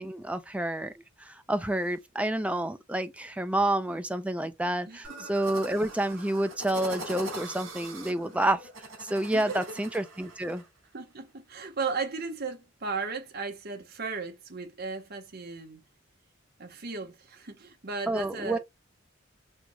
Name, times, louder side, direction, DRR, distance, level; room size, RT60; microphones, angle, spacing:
voice 1, 0.0-8.7 9.0-10.6 18.1-18.6, right 1 dB, 5° right, 0.5 m, -29 dB
voice 2, 4.9-5.3 9.3-9.6 10.9-15.8 16.6-18.6, right 4 dB, 55° right, 1.2 m, -36 dB
sound 1, 5.0-10.6, right 2 dB, 85° right, 2.5 m, -42 dB
6.2 x 3.0 x 2.3 m
head